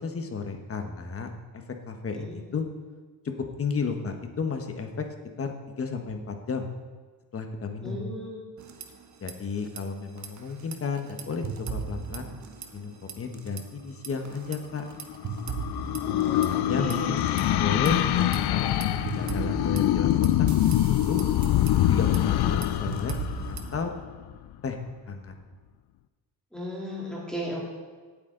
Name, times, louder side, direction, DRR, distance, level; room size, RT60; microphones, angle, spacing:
voice 1, 0.0-2.7 3.6-5.1 5.4-6.7 7.3-8.0 9.2-12.3 12.7-14.8 16.3-20.5 20.9-21.2 21.8-23.1 23.5-23.9 24.6-24.8 25.1-25.3, left 5 dB, 30° left, 5 dB, 1.2 m, -33 dB
voice 2, 7.8-8.4 16.0-17.0 22.5-22.6 26.5-27.6, equal, ahead, -5 dB, 3.1 m, -35 dB
sound 1, 8.6-9.3 9.6-9.8 10.2-12.8 13.1-13.6 14.0-17.4 17.9-23.8, right 5 dB, 40° right, 1.1 m, -37 dB
sound 2, 14.8-24.3, left 12 dB, 65° left, 0.6 m, -25 dB
17.5 x 8.5 x 3.8 m, 1.4 s
cardioid pair, 160°, 42 cm